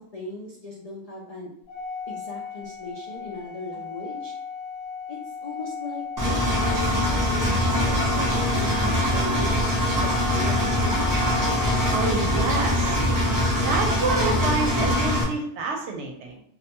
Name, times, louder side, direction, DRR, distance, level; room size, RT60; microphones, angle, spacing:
voice 1, 0.0-1.5 2.1-4.3 5.1-11.2, left 2 dB, 80° left, -3 dB, 0.3 m, -38 dB
Organ, 1.7-12.5, left 5 dB, 60° left, 1.1 m, -36 dB
Engine, 6.2-15.2, left 1 dB, 30° right, 0.4 m, -23 dB
voice 2, 11.9-13.0 13.5-16.4, right 3 dB, 75° right, 1 dB, 0.9 m, -28 dB
2.3 x 2.1 x 2.8 m, 0.69 s
omnidirectional pair, 1.2 m